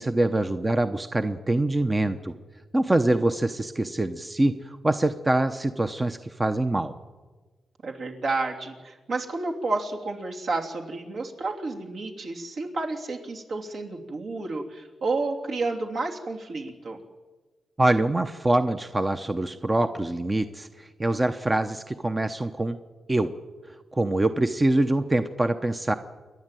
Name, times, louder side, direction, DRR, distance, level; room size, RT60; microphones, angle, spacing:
voice 1, 0.0-2.3 2.7-6.9 17.8-22.8 23.1-23.3 23.9-25.9, right 2 dB, 20° right, 8 dB, 0.8 m, -24 dB
voice 2, 7.8-17.0, right 3 dB, 65° right, 1 dB, 3.1 m, -31 dB
28.5 x 11.5 x 9.2 m, 1.3 s
wide cardioid pair, 120°, 0 cm